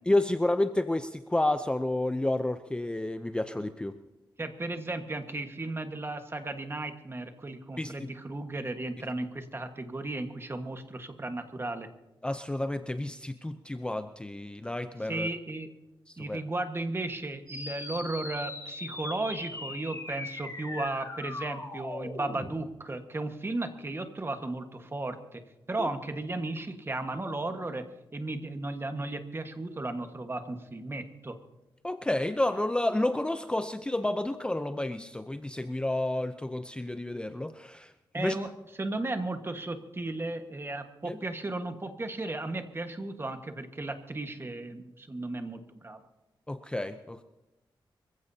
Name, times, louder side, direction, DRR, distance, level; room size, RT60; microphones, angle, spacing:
voice 1, 0.1-3.9 7.8-7.9 12.2-15.3 16.2-16.4 25.8-25.9 31.8-38.4 41.0-41.2 46.5-47.2, left 1 dB, 10° left, 10 dB, 0.6 m, -30 dB
voice 2, 4.4-11.9 15.0-15.7 16.2-25.4 25.7-27.8 28.1-31.3 38.1-38.5 38.8-46.0, right 2 dB, 25° right, 7 dB, 1.4 m, -35 dB
sound 1, 17.5-22.5, left 2 dB, 35° left, 4.0 m, -40 dB
25.5 x 15.5 x 2.8 m, 0.99 s
wide cardioid pair, 90°, 9 cm